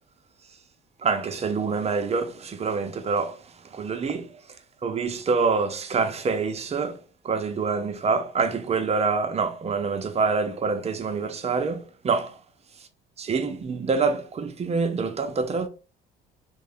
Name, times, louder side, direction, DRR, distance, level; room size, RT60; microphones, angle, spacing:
voice 1, 1.0-3.4 3.7-4.3 4.8-7.0 7.2-12.4 13.2-15.7, right 4 dB, 30° right, 0.6 m, -26 dB
3.1 x 2.2 x 3.5 m
supercardioid pair, 80°, 21 cm